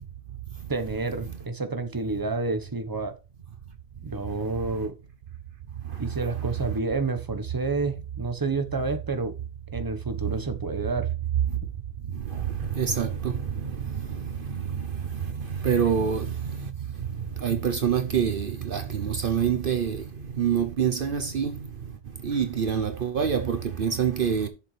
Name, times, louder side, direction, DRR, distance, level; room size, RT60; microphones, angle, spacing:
voice 1, 0.7-3.2 4.0-5.0 6.0-9.4 9.7-11.1, right 3 dB, 20° right, 1.1 m, -29 dB
voice 2, 12.7-13.4 15.6-16.3 17.4-20.0 20.4-21.5 22.2-24.5, right 7 dB, 60° right, 1.0 m, -25 dB
11.0 x 6.8 x 3.3 m
omnidirectional pair, 1.1 m